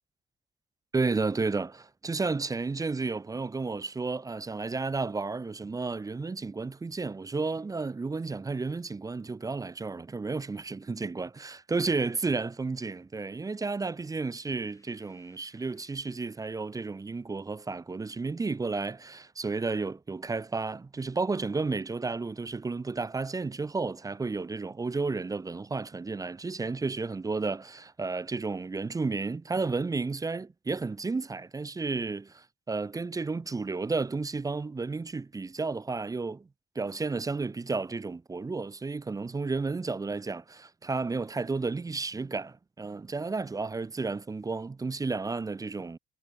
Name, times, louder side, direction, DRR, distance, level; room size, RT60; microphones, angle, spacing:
voice 1, 0.9-36.5 36.8-46.0, right 3 dB, 15° right, 0.5 m, -32 dB
sound 1, 14.4-17.1, left 2 dB, 15° left, 6.0 m, -69 dB
cardioid pair, 90°, 20 cm